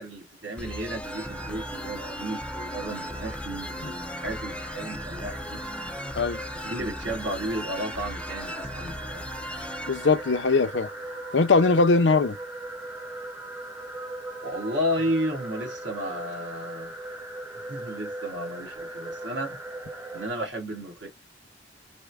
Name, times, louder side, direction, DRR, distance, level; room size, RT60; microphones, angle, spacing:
voice 1, 0.0-5.6 6.6-9.2 14.4-16.9 17.7-19.6 20.1-21.1, equal, 80° right, 2.2 m, -33 dB
sound 1, 0.6-11.2, left 1 dB, 5° left, 0.3 m, -38 dB
sound 2, 1.0-20.3, right 2 dB, 15° right, 0.8 m, -39 dB
voice 2, 9.9-10.9 11.3-12.4, left 3 dB, 80° left, 0.6 m, -21 dB
4.3 x 2.1 x 3.5 m
head